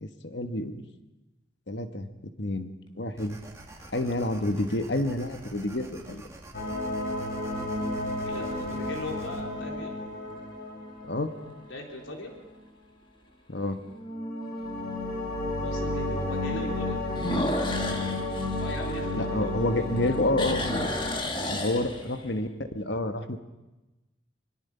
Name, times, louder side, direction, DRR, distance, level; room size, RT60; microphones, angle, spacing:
voice 1, 0.0-0.8 1.7-2.1 2.4-3.4 3.9-6.3 11.1-11.3 13.5-13.8 19.1-20.7 21.5-22.5 22.7-23.4, left 1 dB, 65° left, 8 dB, 1.4 m, -29 dB
sound 1, 3.2-9.4, right 1 dB, 15° right, 1.9 m, -47 dB
sound 2, 3.5-4.1 4.8-4.9 10.1-10.6 11.1-11.2 11.7-11.8 12.1-12.2 13.7-13.8 17.1-19.6 20.0-22.3, left 1 dB, 25° left, 1.7 m, -32 dB
sound 3, 6.5-11.8 13.9-21.1, left 1 dB, 50° left, 5.2 m, -32 dB
voice 2, 8.1-10.0 11.7-12.3 15.6-17.0 18.6-20.3 21.2-21.7, left 1 dB, 85° left, 1 dB, 4.1 m, -40 dB
24.5 x 21.5 x 5.7 m, 1.0 s
head